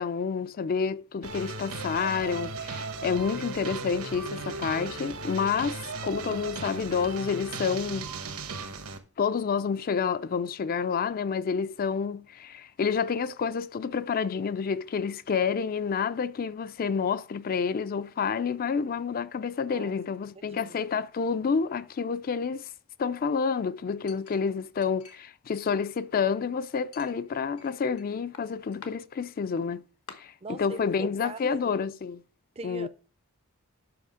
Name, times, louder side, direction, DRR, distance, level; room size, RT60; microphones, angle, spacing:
voice 1, 0.0-8.1 9.2-22.7 23.0-29.8 30.2-32.2 32.6-32.9, left 6 dB, 40° left, 0.4 m, -29 dB
sound 1, 1.2-9.0, right 4 dB, 70° right, 1.1 m, -37 dB
Chink clink, 24.1-25.3 25.6-26.4 26.9-28.0 28.3-28.9 29.6-29.7 30.1-30.2, left 5 dB, 85° left, 1.2 m, -49 dB
voice 2, 30.4-31.7 32.6-32.9, right 3 dB, 25° right, 0.5 m, -41 dB
7.8 x 5.8 x 4.9 m
head